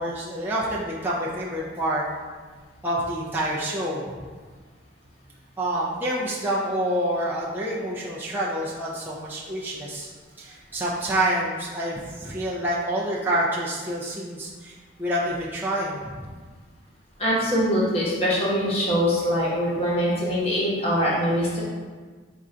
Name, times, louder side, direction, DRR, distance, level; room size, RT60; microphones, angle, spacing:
voice 1, 0.0-2.1 2.8-4.2 5.6-10.1 10.4-16.3, right 1 dB, 10° right, -6 dB, 0.4 m, -27 dB
voice 2, 17.2-21.6, equal, 30° left, -7 dB, 1.0 m, -23 dB
3.7 x 2.5 x 4.3 m, 1.5 s
head